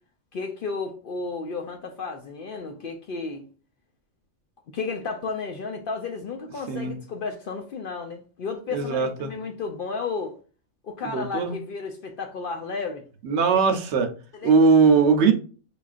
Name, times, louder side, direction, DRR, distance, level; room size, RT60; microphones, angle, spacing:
voice 1, 0.3-3.5 4.7-10.3 10.8-13.0 14.3-14.6, left 4 dB, 60° left, 0.6 m, -33 dB
voice 2, 6.7-7.0 8.7-9.3 11.0-11.6 13.2-14.1 14.4-15.3, right 5 dB, 70° right, 0.9 m, -20 dB
5.3 x 2.4 x 2.4 m
omnidirectional pair, 1.3 m